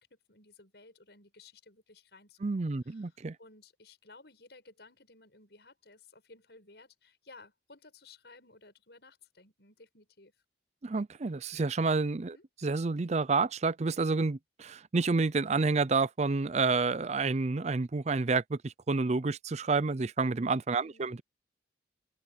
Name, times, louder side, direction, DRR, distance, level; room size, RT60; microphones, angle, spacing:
voice 1, 0.0-10.3 12.2-12.4 20.7-21.1, left 3 dB, 70° left, 7.7 m, -57 dB
voice 2, 2.4-3.4 10.8-12.4 12.6-21.2, right 4 dB, 40° right, 0.5 m, -29 dB
head